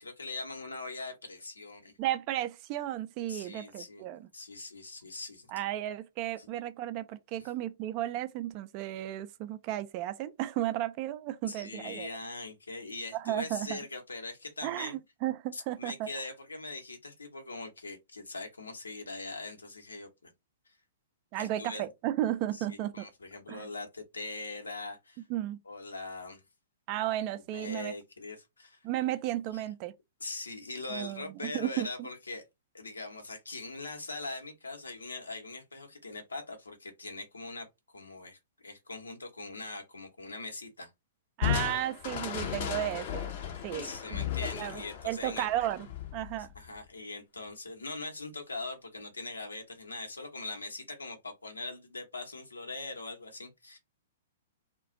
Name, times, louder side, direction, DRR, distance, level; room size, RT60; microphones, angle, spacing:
voice 1, 0.0-1.9 3.3-5.5 6.4-6.5 7.4-7.5 11.5-15.0 15.5-20.3 20.7-20.8 21.4-21.9 22.5-25.2 25.6-26.4 27.5-28.9 29.5-29.6 30.2-32.4 32.7-37.7 37.9-40.9 43.8-45.5 46.5-53.8, left 3 dB, 80° left, 0.9 m, -42 dB
voice 2, 2.0-4.2 5.5-12.1 13.1-13.8 14.6-16.1 21.3-23.1 23.5-23.7 25.3-25.6 26.9-27.9 28.8-29.9 30.9-32.1 41.4-43.3 43.6-44.2 44.5-45.9 46.1-46.5, right 13 dB, 40° right, 0.3 m, -34 dB
Crushing, 41.4-46.8, left 9 dB, 50° left, 0.6 m, -35 dB
2.4 x 2.2 x 3.7 m
figure-of-eight pair, 110°, 0 cm